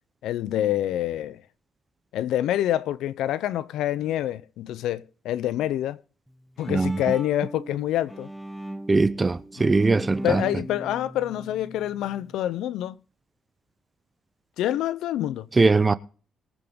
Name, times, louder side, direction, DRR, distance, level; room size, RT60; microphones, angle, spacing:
voice 1, 0.2-1.4 2.1-6.0 6.6-8.3 9.6-9.7 10.2-13.0 14.6-15.5, left 12 dB, 85° left, 0.7 m, -26 dB
Bowed string instrument, 6.3-12.4, right 1 dB, 5° right, 1.0 m, -39 dB
voice 2, 6.7-7.0 8.9-10.4 15.6-15.9, right 3 dB, 25° right, 0.7 m, -21 dB
22.0 x 8.0 x 3.8 m
cardioid pair, 90°, 0 cm